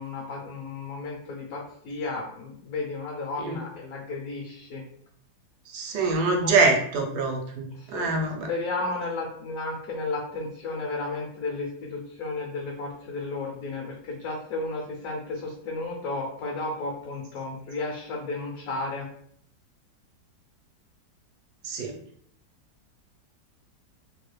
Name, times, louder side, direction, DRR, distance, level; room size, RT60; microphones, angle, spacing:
voice 1, 0.0-4.8 6.4-6.7 7.7-8.1 8.5-19.1, left 3 dB, 65° left, -2 dB, 0.9 m, -33 dB
voice 2, 5.7-8.5 21.6-21.9, right 3 dB, 75° right, 1 dB, 1.1 m, -25 dB
3.0 x 2.3 x 3.1 m, 0.65 s
omnidirectional pair, 1.9 m